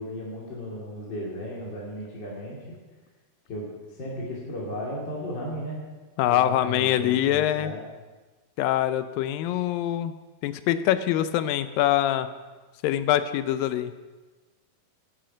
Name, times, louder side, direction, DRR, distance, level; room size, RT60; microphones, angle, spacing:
voice 1, 0.0-2.6 3.5-5.8 6.3-7.8, equal, 35° left, -5 dB, 2.7 m, -35 dB
voice 2, 6.2-7.7 8.6-10.1 10.4-12.3 12.8-13.9, left 12 dB, 80° left, 12 dB, 2.3 m, -24 dB
17.0 x 10.0 x 5.2 m, 1.3 s
omnidirectional pair, 4.2 m